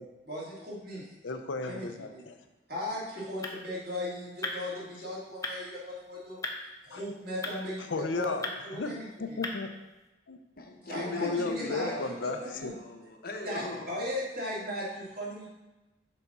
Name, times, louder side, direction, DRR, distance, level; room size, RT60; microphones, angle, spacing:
voice 1, 0.2-1.0 1.6-2.3 2.7-6.4 6.8-8.3 8.6-9.4 10.9-12.7 13.4-15.5, left 1 dB, 55° right, -7 dB, 2.6 m, -37 dB
voice 2, 1.2-2.4 4.8-4.9 6.9-7.0 7.9-9.7 10.3-10.4 11.2-12.7, left 3 dB, 90° left, 7 dB, 0.6 m, -34 dB
sound 1, 2.9-10.1, left 2 dB, 20° left, 0.6 m, -42 dB
voice 3, 10.6-13.9, left 2 dB, 50° left, 3 dB, 0.8 m, -40 dB
6.8 x 4.1 x 5.5 m, 1.0 s
head